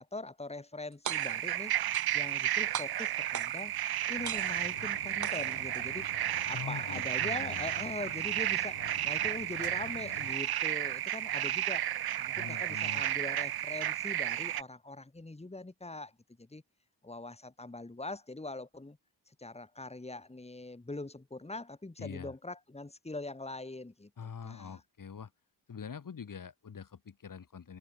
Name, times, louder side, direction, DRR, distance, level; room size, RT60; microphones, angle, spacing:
voice 1, 0.0-1.7 2.1-3.7 4.1-6.1 6.5-11.8 12.2-16.1 16.4-16.6 17.0-19.0 19.3-24.1 24.4-24.8, left 2 dB, 15° left, 5.2 m, -42 dB
sound 1, 0.9-1.5 1.9-2.5 2.7-3.8 4.2-4.8 5.2-5.8, right 8 dB, 45° right, 1.0 m, -40 dB
sound 2, 1.1-14.6, right 12 dB, 60° right, 0.6 m, -33 dB
sound 3, 4.1-10.3, left 9 dB, 70° left, 2.9 m, -50 dB
voice 2, 6.5-7.7 12.3-13.1 22.0-22.3 24.2-25.3 25.7-27.8, left 6 dB, 50° left, 5.7 m, -44 dB
wide cardioid pair, 135°, 42 cm